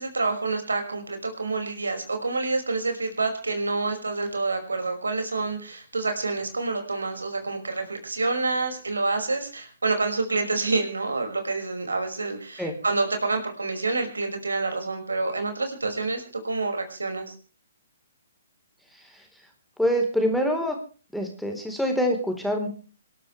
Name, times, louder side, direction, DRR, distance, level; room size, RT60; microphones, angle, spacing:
voice 1, 0.0-17.3, right 3 dB, 85° right, 5 dB, 5.7 m, -28 dB
voice 2, 19.8-20.8 21.1-22.7, equal, ahead, 2 dB, 4.0 m, -25 dB
27.0 x 12.5 x 3.3 m, 0.37 s
figure-of-eight pair, 130°, 0 cm